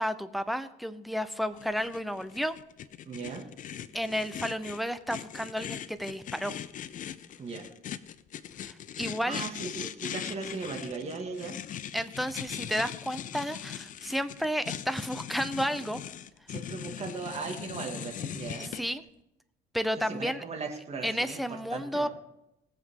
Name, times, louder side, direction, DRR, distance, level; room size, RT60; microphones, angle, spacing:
voice 1, 0.0-2.5 3.9-6.5 8.6-9.4 11.9-16.0 18.6-19.0 19.7-20.4 21.0-22.1, equal, ahead, 11 dB, 0.8 m, -32 dB
sound 1, 1.6-18.8, left 10 dB, 50° left, 0.6 m, -40 dB
voice 2, 3.1-3.5 7.4-7.7 9.2-11.7 16.5-18.8 20.0-22.1, right 4 dB, 40° right, 2 dB, 2.1 m, -38 dB
19.0 x 7.2 x 3.8 m, 0.85 s
cardioid pair, 110°, 17 cm